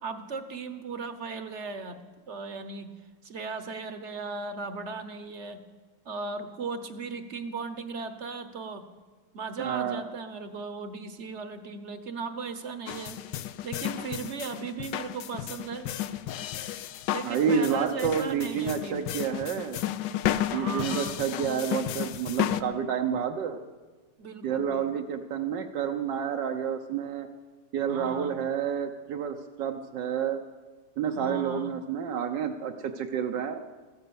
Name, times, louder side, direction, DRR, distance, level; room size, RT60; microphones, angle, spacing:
voice 1, 0.0-2.9 3.2-5.6 6.0-8.8 9.3-13.2 13.6-15.9 17.1-19.0 20.4-21.2 24.2-25.0 27.9-28.4 31.1-31.7, right 4 dB, 50° right, 10 dB, 1.1 m, -37 dB
voice 2, 9.6-10.0 17.2-19.8 20.5-23.6 24.4-27.3 27.7-30.4 31.0-33.6, right 7 dB, 80° right, 4 dB, 1.5 m, -29 dB
sound 1, 12.9-22.6, left 12 dB, 80° left, 1.3 m, -33 dB
15.5 x 13.5 x 7.0 m, 1.4 s
omnidirectional pair, 1.9 m